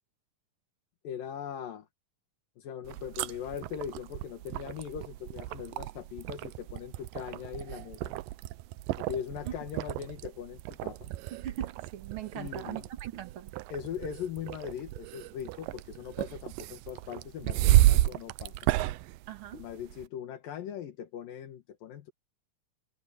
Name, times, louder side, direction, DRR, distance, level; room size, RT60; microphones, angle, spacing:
voice 1, 1.0-1.9 2.6-8.2 9.0-11.1 12.3-12.9 13.7-18.7 19.5-22.1, left 8 dB, 80° left, 3.3 m, -40 dB
sound 1, 2.8-20.1, right 16 dB, 85° right, 2.3 m, -32 dB
voice 2, 11.3-13.5 19.3-19.7, right 11 dB, 50° right, 2.0 m, -40 dB
omnidirectional pair, 4.0 m